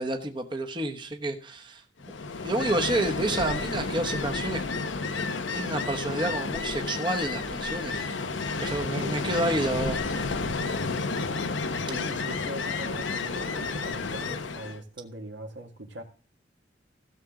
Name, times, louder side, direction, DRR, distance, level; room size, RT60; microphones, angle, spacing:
voice 1, 0.0-1.8 2.4-4.6 5.5-8.1 8.6-10.0, right 2 dB, 25° right, 4 dB, 1.1 m, -29 dB
Ocean, 2.0-14.8, left 4 dB, 80° left, 0.9 m, -31 dB
voice 2, 9.0-9.3 11.9-16.0, right 1 dB, 75° right, 3 dB, 2.1 m, -41 dB
16.0 x 7.4 x 3.7 m, 0.37 s
head